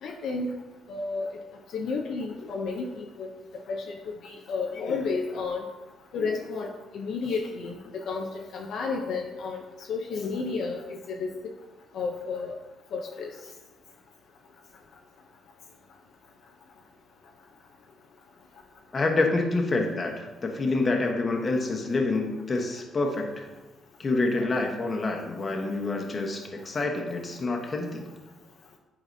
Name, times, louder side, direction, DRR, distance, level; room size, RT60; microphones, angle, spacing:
voice 1, 0.0-0.6 0.9-1.3 1.7-3.3 3.7-3.9 4.2-5.6 6.1-6.7 6.9-9.6 9.9-11.3 11.9-12.5 12.9-13.3 24.3-24.5, left 4 dB, 70° left, 1 dB, 0.6 m, -31 dB
voice 2, 18.9-20.1 20.4-23.5 24.0-28.1, left 3 dB, 35° left, 2 dB, 1.1 m, -27 dB
9.1 x 3.9 x 2.7 m, 1.2 s
cardioid pair, 80°, 0 cm